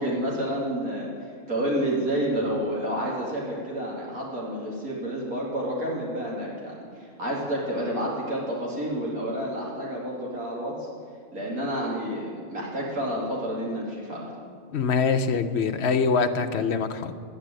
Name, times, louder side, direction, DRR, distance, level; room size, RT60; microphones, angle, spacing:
voice 1, 0.0-10.9 11.3-14.3, right 1 dB, 85° right, -5 dB, 3.0 m, -29 dB
voice 2, 14.7-17.1, left 5 dB, 55° left, 8 dB, 0.9 m, -24 dB
11.5 x 9.6 x 8.9 m, 2.1 s
omnidirectional pair, 1.5 m